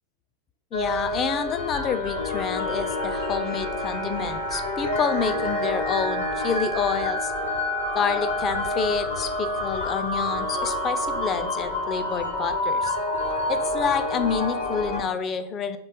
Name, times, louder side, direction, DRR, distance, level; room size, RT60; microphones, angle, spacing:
sound 1, 0.7-15.0, left 2 dB, 65° left, 0.9 m, -28 dB
voice 1, 0.7-7.3 7.9-13.0 13.5-15.8, left 6 dB, 25° left, 10 dB, 0.4 m, -28 dB
Wind instrument woodwind instrument, 3.0-8.9, right 8 dB, 50° right, 0.4 m, -35 dB
3.8 x 3.5 x 4.0 m, 0.87 s
figure-of-eight pair, 90°, 0 cm